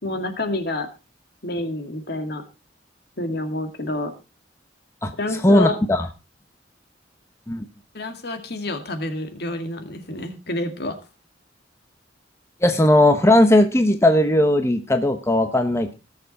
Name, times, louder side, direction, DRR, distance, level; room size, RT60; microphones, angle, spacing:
voice 1, 0.0-0.9 1.4-2.4 3.2-4.1 5.2-5.8 7.9-11.0, left 1 dB, 60° left, 7 dB, 2.2 m, -28 dB
voice 2, 5.4-6.1 7.5-7.6 12.6-15.9, left 1 dB, 15° left, 7 dB, 0.9 m, -17 dB
19.0 x 7.1 x 4.1 m, 0.28 s
head